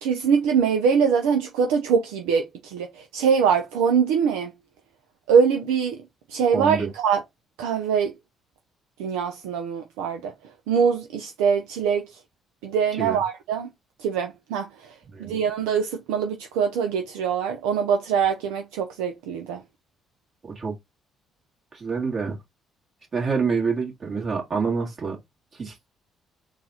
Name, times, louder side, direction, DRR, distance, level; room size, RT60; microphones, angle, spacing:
voice 1, 0.0-4.5 5.3-6.0 6.3-7.2 7.6-8.1 9.0-10.3 10.7-12.2 12.6-13.7 14.0-14.9 15.2-19.6, right 6 dB, 80° right, 0.5 m, -23 dB
voice 2, 6.5-6.9 12.9-13.2 15.1-15.4 20.4-20.7 21.7-22.4 23.1-25.2 25.5-25.8, right 5 dB, 45° right, 2.0 m, -27 dB
3.9 x 2.4 x 4.2 m
hypercardioid pair, 50°, 0 cm